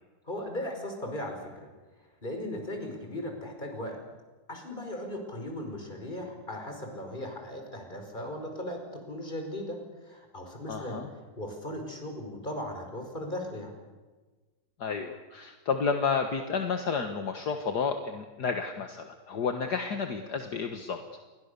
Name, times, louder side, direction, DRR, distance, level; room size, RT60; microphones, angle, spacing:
voice 1, 0.3-1.7 2.2-4.0 4.5-8.8 9.1-9.8 10.0-11.0 11.4-13.7, left 1 dB, 25° left, 3 dB, 5.4 m, -37 dB
voice 2, 10.7-11.1 14.8-21.0, left 5 dB, 60° left, 6 dB, 2.1 m, -31 dB
29.0 x 23.0 x 6.9 m, 1.3 s
omnidirectional pair, 2.0 m